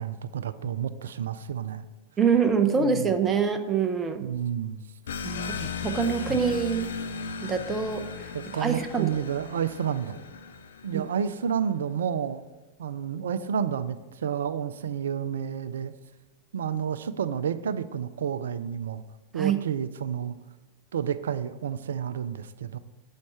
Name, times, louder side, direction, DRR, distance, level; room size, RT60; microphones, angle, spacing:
voice 1, 0.0-1.8 2.7-3.1 4.2-4.8 6.3-6.4 8.3-10.2 10.8-12.4 12.8-15.9 16.5-19.0 19.3-20.4 20.9-22.8, right 8 dB, 65° right, 13 dB, 0.4 m, -30 dB
voice 2, 2.2-4.2 5.2-6.9 7.4-8.3 8.6-9.2 10.9-11.1 19.4-19.6, right 6 dB, 20° right, 8 dB, 0.6 m, -25 dB
sound 1, 5.1-11.3, left 5 dB, 65° left, 0.4 m, -37 dB
7.2 x 5.3 x 4.4 m, 1.1 s
figure-of-eight pair, 90°, 0 cm